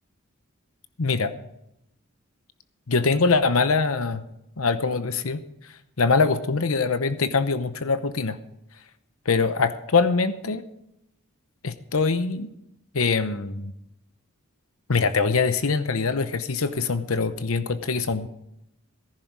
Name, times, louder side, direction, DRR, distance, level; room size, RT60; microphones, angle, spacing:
voice 1, 1.0-1.3 2.9-4.2 4.6-5.4 6.0-8.4 9.3-10.6 11.6-12.5 12.9-13.7 14.9-18.3, left 4 dB, 75° left, 11 dB, 0.9 m, -23 dB
18.0 x 11.0 x 4.7 m, 0.82 s
head